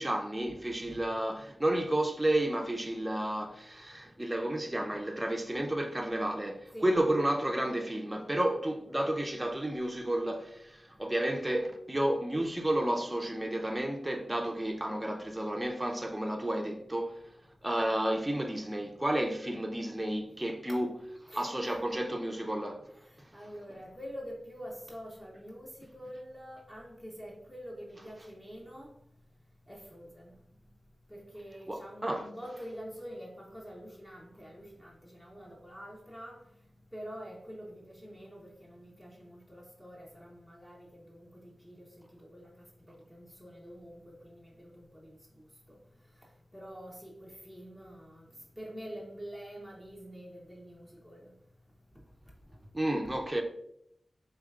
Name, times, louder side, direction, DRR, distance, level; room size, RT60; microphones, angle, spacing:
voice 1, 0.0-17.2 17.6-20.9 21.3-22.8 23.2-23.3 31.7-32.3 52.7-53.4, right 1 dB, 20° right, 0.5 m, -31 dB
voice 2, 21.3-21.8 23.1-28.9 29.7-30.4 31.1-36.4 36.9-45.5 46.5-48.2 48.6-51.3 52.6-52.7 53.0-53.1, equal, 10° left, 0.9 m, -46 dB
4.8 x 3.2 x 2.4 m
cardioid pair, 50°, 0 cm